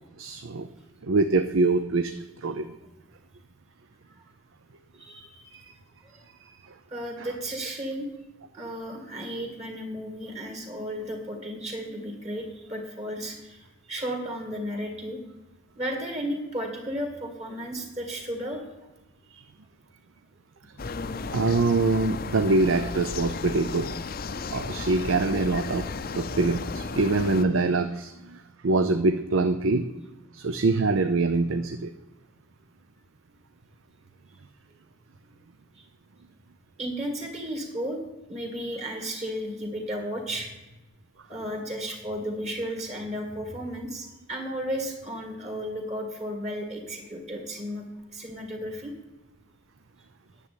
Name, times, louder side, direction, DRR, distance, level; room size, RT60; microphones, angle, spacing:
voice 1, 0.2-0.7 1.0-2.7 5.5-5.7 6.4-6.8 7.2-7.3 19.3-19.5 21.3-23.9 24.5-25.9 26.1-29.9 30.3-31.9, right 3 dB, 75° right, 9 dB, 0.6 m, -25 dB
voice 2, 4.9-5.6 6.1-6.2 6.9-8.1 8.5-15.2 15.8-18.6 35.7-35.9 36.8-38.0 38.3-40.5 41.3-47.8 48.1-48.9, equal, 35° right, 3 dB, 2.1 m, -34 dB
sound 1, 20.8-27.4, left 4 dB, 45° left, 0.5 m, -34 dB
10.0 x 7.7 x 8.5 m, 1.0 s
head